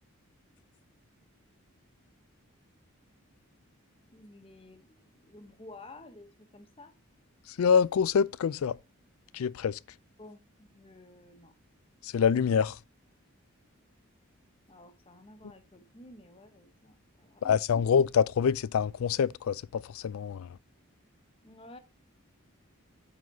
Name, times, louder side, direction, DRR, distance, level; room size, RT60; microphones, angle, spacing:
voice 1, 4.1-6.9 10.2-11.5 14.7-17.9 21.4-21.8, left 2 dB, 25° left, 1.0 m, -52 dB
voice 2, 7.6-8.8 9.3-9.8 12.0-12.8 17.4-20.6, left 7 dB, 75° left, 0.3 m, -26 dB
7.6 x 4.0 x 5.3 m
head